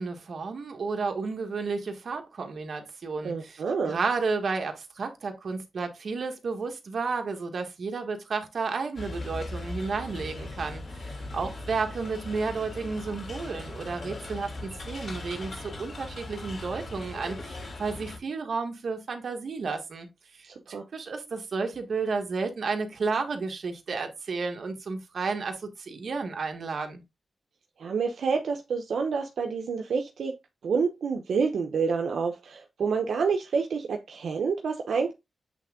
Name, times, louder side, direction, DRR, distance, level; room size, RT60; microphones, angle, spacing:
voice 1, 0.0-20.1 20.3-27.0, right 4 dB, 65° right, 1.5 m, -32 dB
voice 2, 3.2-4.0 20.5-20.8 27.8-30.3 30.6-35.1, right 5 dB, 90° right, 0.8 m, -28 dB
sound 1, 9.0-18.2, left 2 dB, 55° left, 2.9 m, -39 dB
8.3 x 3.5 x 3.7 m
wide cardioid pair, 100°, 0 cm